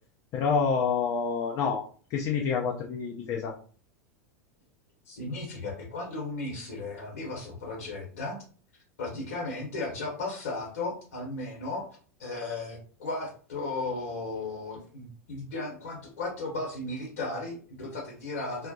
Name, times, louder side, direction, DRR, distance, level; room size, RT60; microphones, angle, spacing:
voice 1, 0.3-1.8 2.1-3.5, left 6 dB, 40° left, -1 dB, 0.5 m, -27 dB
voice 2, 5.1-8.4 9.0-11.9 12.2-18.7, left 2 dB, 65° left, -2 dB, 0.9 m, -35 dB
2.3 x 2.1 x 2.6 m, 0.41 s
figure-of-eight pair, 85°, 8 cm